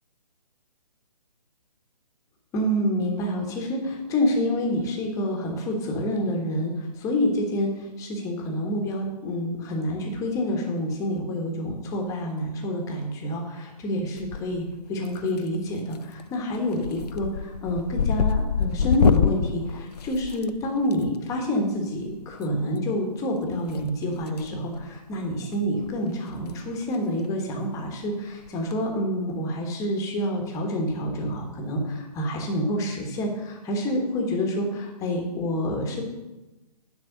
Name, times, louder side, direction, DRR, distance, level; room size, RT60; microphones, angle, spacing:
voice 1, 2.5-36.0, equal, 15° left, 1 dB, 1.4 m, -28 dB
sound 1, 14.2-14.7 15.1-15.6 15.9-16.2 16.5-21.0 22.3-22.5 23.7-24.5 24.8-25.0 25.5-25.6 25.9-26.0 26.3-26.5 26.8-26.9 28.5-28.7, left 7 dB, 70° left, 0.5 m, -26 dB
10.5 x 4.1 x 6.6 m, 1.0 s
figure-of-eight pair, 135°, 21 cm